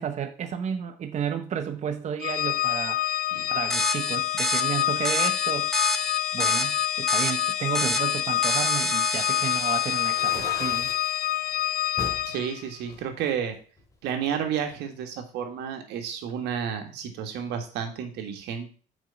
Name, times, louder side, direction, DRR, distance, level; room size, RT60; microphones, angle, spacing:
voice 1, 0.0-3.1 3.5-5.7 6.3-10.9, right 8 dB, 45° right, 0.8 m, -32 dB
Organ, 2.2-12.6, left 13 dB, 60° left, 0.4 m, -27 dB
sound 1, 3.7-10.9, equal, ahead, 0.6 m, -30 dB
sound 2, 10.0-11.1 12.0-12.3 12.9-14.0, left 1 dB, 20° left, 2.2 m, -38 dB
voice 2, 12.2-13.6 14.0-18.7, right 8 dB, 85° right, 1.7 m, -31 dB
6.2 x 5.2 x 6.9 m
cardioid pair, 110°, 17 cm